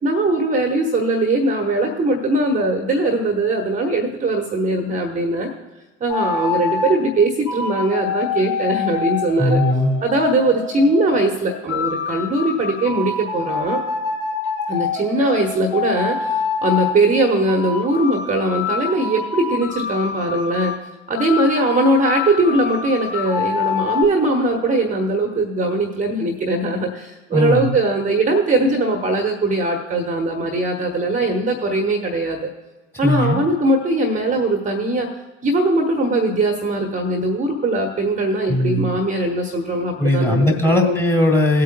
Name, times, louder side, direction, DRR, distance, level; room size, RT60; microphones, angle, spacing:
voice 1, 0.0-5.5 6.0-9.6 10.0-13.8 14.7-20.7 21.1-32.5 33.0-35.1 35.4-41.0, right 2 dB, 20° right, 4 dB, 1.1 m, -20 dB
sound 1, 6.1-7.0 7.5-11.2 11.7-17.0 17.5-20.8 21.2-24.0, left 5 dB, 40° left, 2.4 m, -26 dB
voice 2, 9.4-10.0 27.3-27.8 33.0-33.4 38.5-39.0 40.0-41.6, left 1 dB, 5° left, 7 dB, 1.7 m, -18 dB
17.5 x 8.3 x 2.2 m, 1.2 s
figure-of-eight pair, 70°, 37 cm